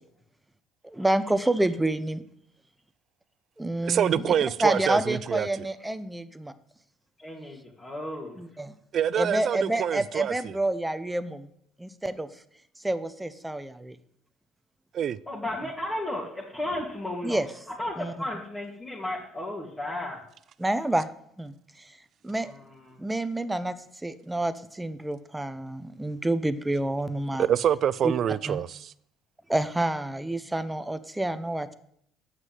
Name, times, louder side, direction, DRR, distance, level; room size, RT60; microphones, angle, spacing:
voice 1, 0.8-2.2 3.6-4.3 4.6-6.5 8.4-8.8 9.1-11.5 11.8-12.3 12.8-14.0 17.2-17.5 18.0-18.1 20.6-21.1 21.4-22.0 22.2-22.5 23.0-23.8 24.0-27.5 28.0-28.1 28.5-28.6 29.5-31.7, right 1 dB, 10° right, 0.7 m, -28 dB
voice 2, 3.8-5.5 8.9-10.5 14.9-15.2 27.4-28.9, right 9 dB, 55° right, 0.4 m, -26 dB
voice 3, 7.2-8.4 15.3-17.4 17.8-20.2 22.3-23.0, left 1 dB, 20° left, 2.4 m, -34 dB
7.7 x 6.1 x 7.7 m
supercardioid pair, 80°, 0 cm